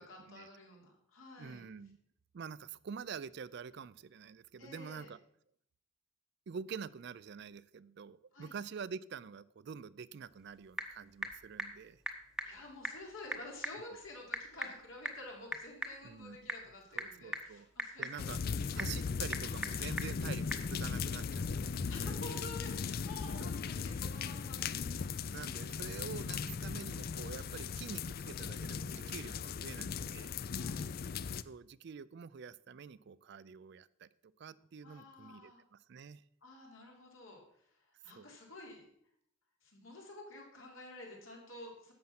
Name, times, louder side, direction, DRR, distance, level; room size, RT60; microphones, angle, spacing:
voice 1, 0.0-1.6 4.6-5.1 8.3-8.6 12.4-18.8 21.9-25.1 30.5-30.9 34.8-35.6 36.4-38.8 39.6-41.9, left 2 dB, 80° left, 0 dB, 3.4 m, -51 dB
voice 2, 1.4-2.0 2.3-5.2 6.5-12.0 16.0-16.4 16.9-17.7 18.0-18.4 18.7-22.5 23.4-23.9 25.3-30.3 31.5-34.1 34.4-36.2 38.1-38.3, right 6 dB, 55° right, 18 dB, 0.4 m, -47 dB
Typing / Telephone, 10.2-20.7, right 1 dB, 5° right, 0.9 m, -44 dB
sound 1, 18.2-31.4, left 6 dB, 45° left, 0.4 m, -38 dB
11.0 x 7.7 x 5.9 m, 0.70 s
head